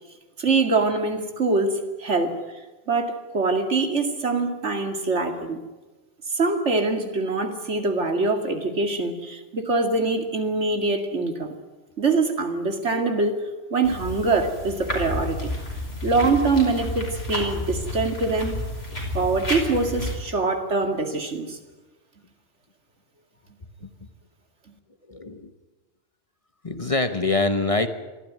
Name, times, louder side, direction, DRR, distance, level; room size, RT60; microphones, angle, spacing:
voice 1, 0.4-2.3 2.9-5.6 6.3-11.5 12.0-13.4 13.7-15.5 16.0-18.5 19.1-21.6, right 3 dB, 80° right, 5 dB, 2.5 m, -24 dB
sound 1, 13.8-20.1, left 1 dB, 60° left, 5.3 m, -31 dB
voice 2, 25.1-25.5 26.6-27.9, left 2 dB, 30° left, 8 dB, 1.2 m, -24 dB
24.0 x 14.5 x 9.4 m, 1.2 s
omnidirectional pair, 1.2 m